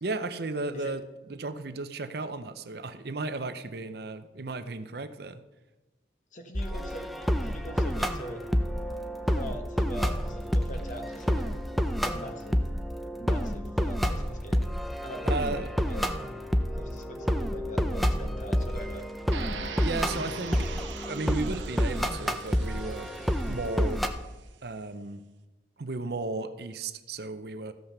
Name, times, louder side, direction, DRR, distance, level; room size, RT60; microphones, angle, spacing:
voice 1, 0.0-1.0 1.3-5.4 15.3-15.7 19.8-23.1 23.5-24.0 24.6-25.2 25.8-27.7, right 3 dB, 55° right, 11 dB, 0.6 m, -34 dB
voice 2, 6.3-7.1 7.4-8.4 9.3-11.4 12.0-12.6 13.2-14.7 15.0-16.0 16.7-19.1, equal, 40° left, 5 dB, 1.3 m, -43 dB
sound 1, 6.5-24.1, equal, ahead, 0.5 m, -29 dB
sound 2, 19.3-24.3, right 5 dB, 80° right, 1.0 m, -42 dB
14.0 x 5.8 x 6.7 m, 1.1 s
head